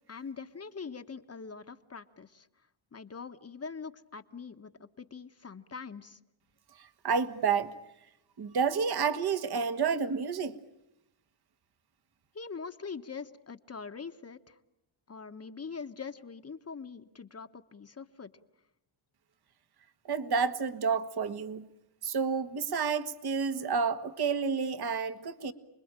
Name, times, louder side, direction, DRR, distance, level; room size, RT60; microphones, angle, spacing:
voice 1, 0.1-2.5 2.9-6.2 12.3-14.6 15.1-18.3, left 5 dB, 30° left, 1.3 m, -43 dB
voice 2, 6.8-7.7 8.4-10.6 20.1-21.7 22.0-25.5, right 5 dB, 50° right, 1.7 m, -30 dB
29.5 x 21.5 x 9.0 m
cardioid pair, 105°, 50 cm